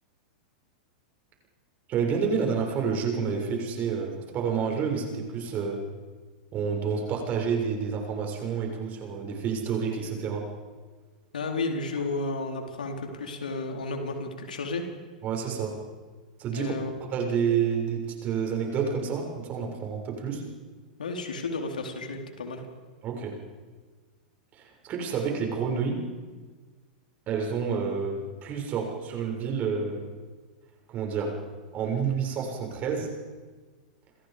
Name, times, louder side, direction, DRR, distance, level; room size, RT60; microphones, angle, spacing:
voice 1, 1.9-5.8 6.5-10.5 15.2-15.8 16.4-16.7 17.1-20.4 23.0-23.4 24.6-26.0 27.3-30.1 30.9-31.4 31.7-33.1, right 6 dB, 35° right, 2 dB, 6.9 m, -29 dB
voice 2, 11.3-14.8 16.5-16.9 21.0-22.6, left 3 dB, 80° left, 3 dB, 4.4 m, -32 dB
29.5 x 26.0 x 5.3 m, 1.4 s
hypercardioid pair, 100°, 4 cm